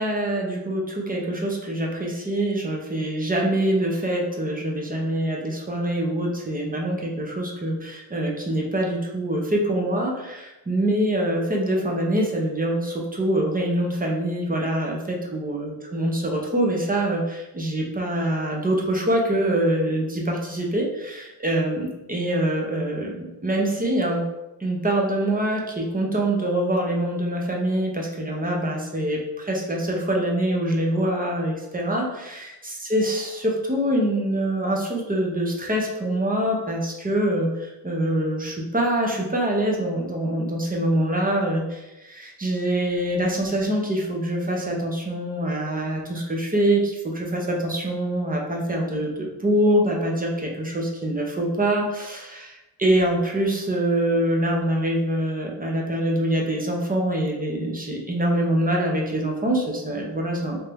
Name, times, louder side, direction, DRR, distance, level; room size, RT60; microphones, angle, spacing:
voice 1, 0.0-24.2 24.6-60.6, right 1 dB, 20° right, 0 dB, 0.8 m, -24 dB
3.4 x 2.8 x 3.4 m, 0.99 s
cardioid pair, 85°, 41 cm